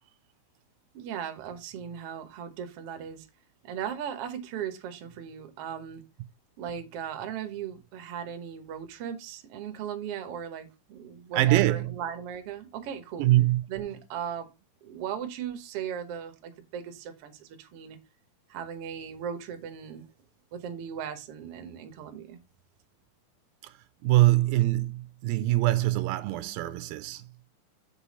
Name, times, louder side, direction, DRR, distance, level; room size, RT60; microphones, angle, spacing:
voice 1, 0.9-3.3 3.6-6.0 6.6-13.2 13.7-14.5 14.8-18.0 18.5-20.1 20.5-22.4, right 8 dB, 65° right, 1.5 m, -37 dB
voice 2, 11.3-11.9 13.2-13.6 23.6-23.7 24.0-27.3, right 16 dB, 85° right, 2.3 m, -23 dB
6.9 x 5.0 x 4.1 m
omnidirectional pair, 4.1 m